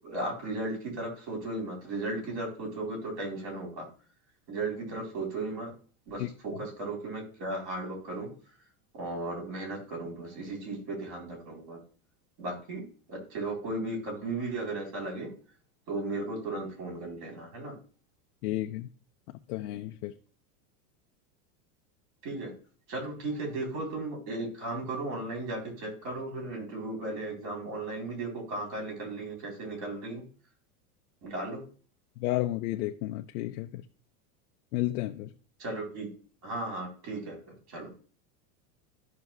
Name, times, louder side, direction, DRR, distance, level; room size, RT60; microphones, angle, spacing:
voice 1, 0.0-3.9 4.5-5.7 6.1-8.3 8.9-11.8 12.4-12.8 13.1-15.3 15.9-17.7 22.2-22.5 22.9-30.2 31.2-31.6 35.6-36.1 36.4-37.9, right 2 dB, 45° right, 3.8 m, -35 dB
voice 2, 18.4-18.9 19.5-20.1 32.2-33.8 34.7-35.3, left 16 dB, 70° left, 0.6 m, -32 dB
14.0 x 5.9 x 2.3 m
supercardioid pair, 160°, 46 cm